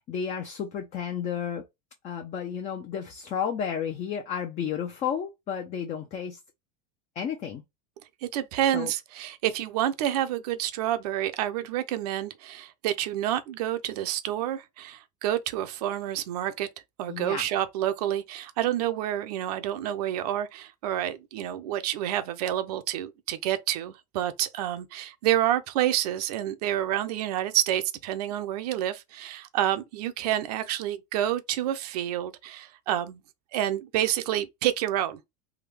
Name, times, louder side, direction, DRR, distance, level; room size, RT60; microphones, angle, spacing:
voice 1, 0.0-1.6 2.0-6.4 7.2-7.6 8.7-8.9 17.1-17.5, left 8 dB, 35° left, 0.6 m, -32 dB
voice 2, 8.2-16.7 17.0-33.2 33.5-35.2, right 12 dB, 75° right, 0.7 m, -28 dB
3.6 x 2.2 x 3.3 m
supercardioid pair, 125°, 20 cm